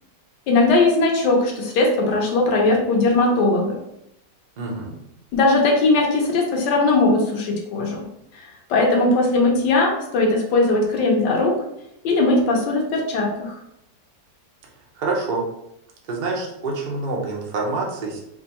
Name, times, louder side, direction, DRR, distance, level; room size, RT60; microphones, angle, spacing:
voice 1, 0.5-3.7 5.3-8.0 8.3-11.6 12.0-13.6, left 2 dB, 90° left, 0 dB, 1.4 m, -19 dB
voice 2, 4.6-4.9 15.0-15.4 16.1-18.2, right 3 dB, 65° right, -2 dB, 0.4 m, -26 dB
3.7 x 2.2 x 2.8 m, 0.80 s
omnidirectional pair, 1.8 m